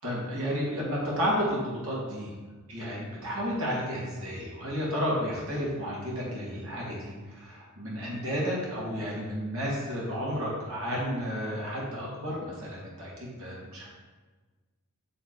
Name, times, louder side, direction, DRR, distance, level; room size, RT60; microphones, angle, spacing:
voice 1, 0.0-2.3 2.7-13.9, equal, 75° right, -5 dB, 2.2 m, -32 dB
9.9 x 3.4 x 4.7 m, 1.3 s
head